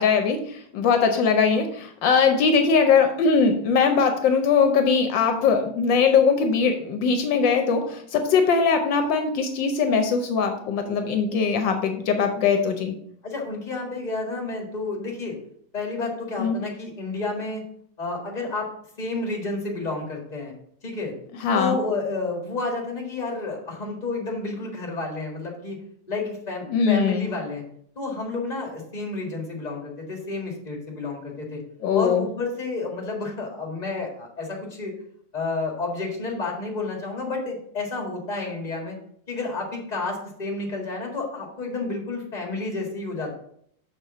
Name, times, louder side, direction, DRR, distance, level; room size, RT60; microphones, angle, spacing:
voice 1, 0.0-12.9 16.4-16.6 21.4-21.8 26.7-27.3 31.8-32.3, left 5 dB, 75° left, 6 dB, 1.4 m, -21 dB
voice 2, 13.2-15.4 15.7-17.6 18.0-18.7 19.0-20.5 20.8-21.1 21.5-25.8 26.1-27.6 27.9-31.6 31.9-34.9 35.3-39.0 39.3-43.3, left 3 dB, 25° left, 1 dB, 1.7 m, -30 dB
6.4 x 4.3 x 6.4 m, 0.68 s
omnidirectional pair, 2.1 m